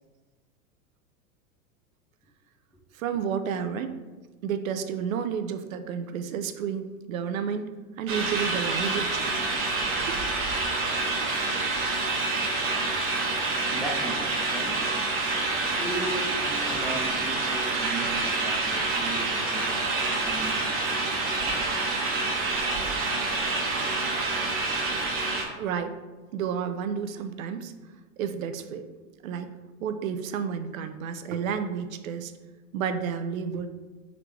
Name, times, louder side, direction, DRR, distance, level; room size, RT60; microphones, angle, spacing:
voice 1, 3.0-4.0 4.4-9.4 10.1-10.2 25.6-26.0 26.3-27.7 28.2-28.9 29.2-29.5 29.8-32.3 32.7-33.7, right 7 dB, 70° right, 9 dB, 0.5 m, -31 dB
sound 1, 8.1-25.4, right 3 dB, 30° right, 0.8 m, -27 dB
voice 2, 13.6-14.9 15.7-21.6, right 2 dB, ahead, -2 dB, 0.6 m, -37 dB
3.8 x 3.2 x 3.0 m, 1.3 s
hypercardioid pair, 95°, 42 cm